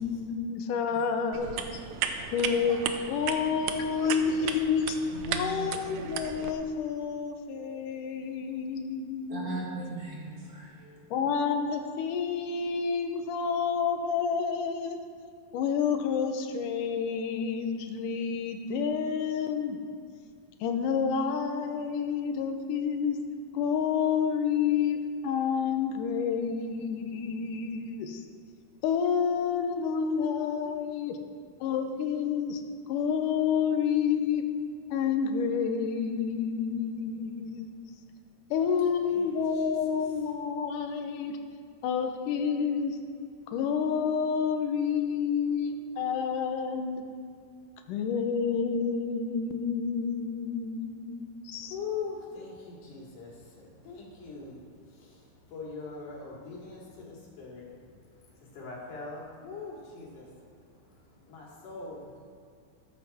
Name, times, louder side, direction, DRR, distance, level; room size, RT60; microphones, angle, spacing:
voice 1, 0.0-1.6 2.3-2.8 3.1-5.0 5.3-9.6 11.1-15.0 15.5-19.9 20.6-23.2 23.5-25.0 25.2-28.2 28.8-31.2 31.6-32.6 32.9-34.4 34.9-37.7 38.5-41.4 41.8-43.0 43.5-47.0 47.9-51.8, left 6 dB, 90° left, 6 dB, 2.4 m, -29 dB
sound 1, 1.3-6.5, right 8 dB, 75° right, 1.8 m, -35 dB
voice 2, 5.1-6.0 9.3-11.1, right 3 dB, 50° right, -4 dB, 2.8 m, -39 dB
voice 3, 51.5-57.7 58.3-62.3, left 5 dB, 75° left, -4 dB, 3.9 m, -42 dB
13.5 x 10.0 x 4.3 m, 2.3 s
omnidirectional pair, 3.6 m